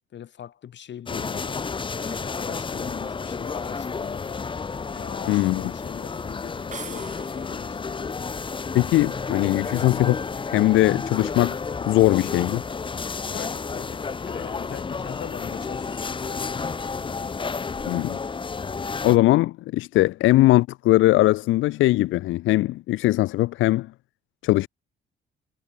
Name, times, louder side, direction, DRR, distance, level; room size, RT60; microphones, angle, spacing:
voice 1, 0.1-4.4 4.9-8.2 13.3-16.6, left 10 dB, 65° left, 6.9 m, -41 dB
sound 1, 1.1-19.2, left 5 dB, 25° left, 0.8 m, -31 dB
voice 2, 5.3-5.6 8.7-10.2 10.5-12.6 17.9-18.2 19.0-23.9 24.4-24.7, left 17 dB, 80° left, 0.5 m, -20 dB
sound 2, 6.7-7.8, right 6 dB, 40° right, 1.7 m, -41 dB
cardioid pair, 90°, 20 cm